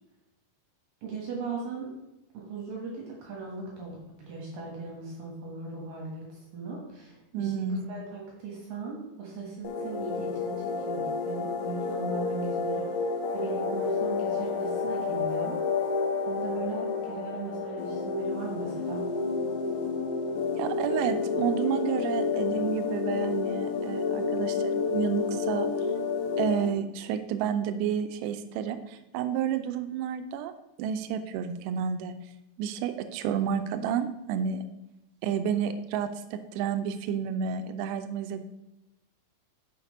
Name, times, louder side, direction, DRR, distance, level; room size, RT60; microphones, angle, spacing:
voice 1, 1.0-1.9 2.3-4.0 4.3-15.6 16.3-19.1, right 4 dB, 65° right, -2 dB, 2.5 m, -38 dB
voice 2, 7.3-7.9 20.5-25.7 26.4-30.5 30.8-32.2 32.6-34.6 35.2-38.4, right 8 dB, 85° right, 9 dB, 2.5 m, -30 dB
sound 1, 9.6-26.7, left 4 dB, 75° left, 3.0 m, -30 dB
6.5 x 5.8 x 5.3 m, 0.94 s
omnidirectional pair, 5.4 m